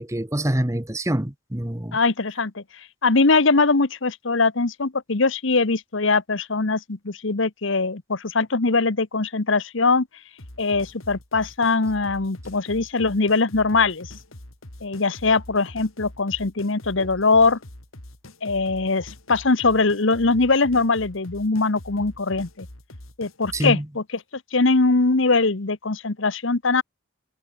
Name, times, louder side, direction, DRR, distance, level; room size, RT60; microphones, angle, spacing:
voice 1, 0.0-2.0 17.0-17.1 23.5-23.8, right 1 dB, 15° right, 1.0 m, -26 dB
voice 2, 1.9-2.6 3.0-10.1 10.6-14.1 14.8-17.6 18.4-22.7 23.2-24.0 24.5-26.8, left 3 dB, 65° left, 1.1 m, -21 dB
sound 1, 10.4-23.6, left 1 dB, 85° left, 3.4 m, -43 dB
head